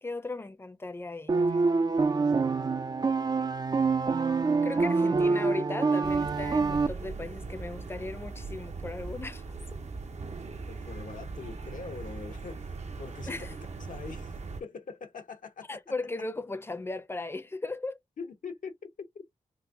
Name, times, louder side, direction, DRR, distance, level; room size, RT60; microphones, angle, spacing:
voice 1, 0.0-1.6 4.6-9.4 9.7-9.8 13.3-13.5 15.7-18.0, left 2 dB, 15° left, 0.6 m, -37 dB
sound 1, 1.3-6.9, right 4 dB, 30° right, 0.4 m, -26 dB
sound 2, 6.0-14.6, right 4 dB, 55° right, 0.7 m, -40 dB
voice 2, 10.7-14.3 14.6-15.8 18.2-18.9 19.1-19.2, left 5 dB, 75° left, 0.9 m, -43 dB
3.9 x 2.2 x 2.6 m
cardioid pair, 55°, 14 cm